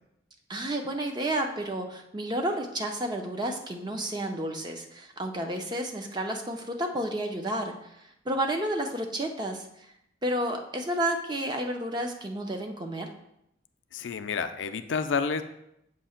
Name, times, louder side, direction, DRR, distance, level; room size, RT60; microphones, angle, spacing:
voice 1, 0.5-9.9 10.2-13.1, right 1 dB, 20° right, 3 dB, 0.5 m, -31 dB
voice 2, 13.9-15.4, left 5 dB, 75° left, 9 dB, 0.4 m, -29 dB
7.5 x 2.8 x 5.7 m, 0.79 s
head